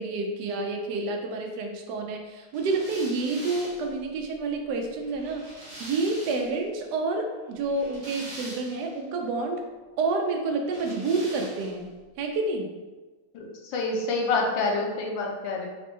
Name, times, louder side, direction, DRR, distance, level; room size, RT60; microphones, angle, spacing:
voice 1, 0.0-9.7 10.0-11.9 12.2-12.7, right 3 dB, 75° right, 3 dB, 0.9 m, -29 dB
sound 1, 2.5-6.6 7.5-9.0 10.6-11.9, right 1 dB, 20° right, 0.7 m, -44 dB
voice 2, 13.3-15.7, left 3 dB, 70° left, 0 dB, 1.3 m, -27 dB
4.1 x 2.2 x 4.4 m, 1.3 s
omnidirectional pair, 2.3 m